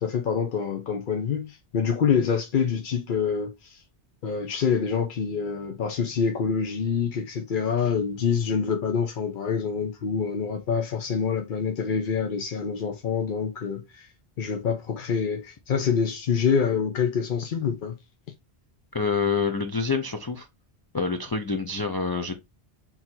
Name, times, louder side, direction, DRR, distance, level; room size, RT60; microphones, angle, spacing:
voice 1, 0.0-3.8 4.2-14.1 14.4-18.0, left 6 dB, 55° left, 0.8 m, -26 dB
voice 2, 18.9-20.5 20.9-22.3, left 5 dB, 40° left, 0.3 m, -27 dB
3.8 x 2.8 x 4.3 m
omnidirectional pair, 1.1 m